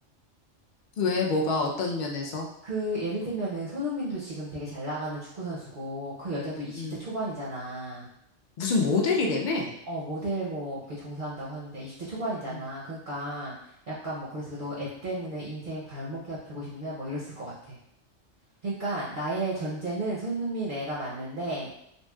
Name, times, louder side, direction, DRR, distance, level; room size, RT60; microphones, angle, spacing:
voice 1, 1.0-2.5 6.7-7.0 8.6-9.7 12.5-12.6, left 3 dB, 55° left, -1 dB, 0.5 m, -26 dB
voice 2, 2.6-8.1 9.9-17.8 18.6-21.7, right 1 dB, 50° right, -7 dB, 0.7 m, -33 dB
3.0 x 2.7 x 2.2 m, 0.77 s
omnidirectional pair, 1.3 m